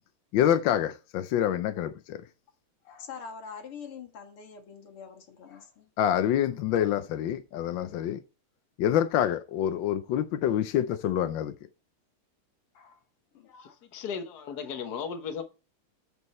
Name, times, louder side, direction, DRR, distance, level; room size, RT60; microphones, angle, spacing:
voice 1, 0.3-2.2 6.0-8.2 8.8-11.5, left 10 dB, 70° left, 1.3 m, -26 dB
voice 2, 2.8-5.9 12.7-13.0 13.3-13.8 14.7-14.9, left 6 dB, 90° left, 2.6 m, -45 dB
voice 3, 13.6-15.4, left 6 dB, 50° left, 1.6 m, -36 dB
14.0 x 5.5 x 4.3 m
omnidirectional pair, 2.4 m